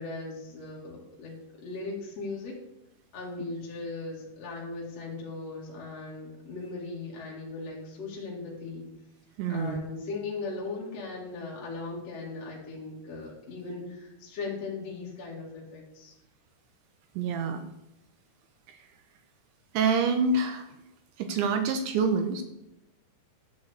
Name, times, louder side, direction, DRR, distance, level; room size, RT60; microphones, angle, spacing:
voice 1, 0.0-2.6 3.1-8.9 9.5-16.1, left 3 dB, 45° left, -4 dB, 2.5 m, -38 dB
voice 2, 9.4-9.8 17.2-17.6 18.7-18.8 19.7-20.7 21.2-22.4, right 4 dB, 75° right, 7 dB, 2.9 m, -26 dB
13.0 x 4.7 x 8.4 m, 0.91 s
omnidirectional pair, 5.8 m